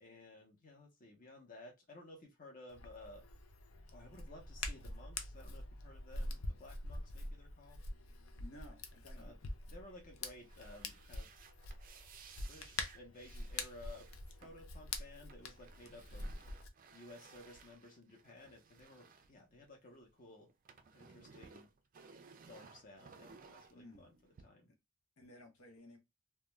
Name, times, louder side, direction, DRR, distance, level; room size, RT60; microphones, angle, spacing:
voice 1, 0.0-3.2 3.9-7.8 9.1-9.4 9.7-11.3 12.5-14.1 14.4-16.4 16.9-20.5 20.9-21.7 22.5-24.1 24.4-24.7, left 2 dB, 40° left, 0.8 m, -56 dB
Hands, 2.7-16.7, left 2 dB, 70° left, 0.5 m, -45 dB
voice 2, 8.4-9.4 23.7-24.1 25.2-26.0, left 1 dB, 85° left, 0.9 m, -56 dB
sound 1, 10.3-20.1 20.4-24.4, right 5 dB, 40° right, 0.3 m, -60 dB
2.3 x 2.2 x 3.0 m
head